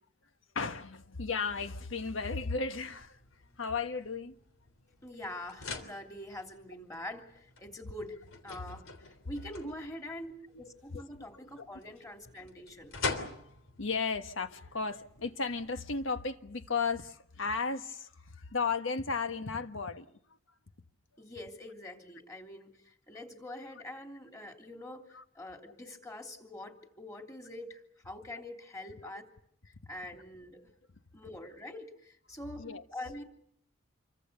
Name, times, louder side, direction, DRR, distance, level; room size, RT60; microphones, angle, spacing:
voice 1, 0.5-3.2 3.6-4.3 9.6-9.7 11.3-11.7 12.4-12.5 13.8-20.1 24.4-24.5 25.1-25.2 25.7-25.8 32.6-32.8, left 4 dB, 70° left, 1.4 m, -35 dB
sound 1, 2.8-15.7, left 3 dB, 90° left, 3.3 m, -45 dB
voice 2, 5.0-10.3 10.6-13.0 21.2-25.0 25.3-29.2 29.6-30.6 31.1-32.7 32.9-33.2, left 1 dB, 15° left, 3.2 m, -45 dB
27.5 x 24.0 x 6.9 m
head